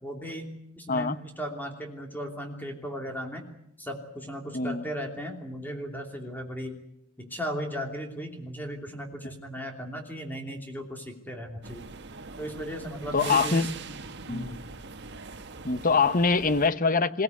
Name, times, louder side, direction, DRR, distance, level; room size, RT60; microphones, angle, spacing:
voice 1, 0.0-3.4 3.8-6.7 7.2-11.9 12.4-13.7 14.3-14.6, equal, 10° left, 3.0 m, -36 dB
voice 2, 4.5-4.8 13.1-13.7 14.3-14.5 15.6-17.2, left 4 dB, 45° left, 1.0 m, -24 dB
sound 1, 11.6-16.7, right 5 dB, 60° right, 1.5 m, -41 dB
23.0 x 17.5 x 9.5 m
head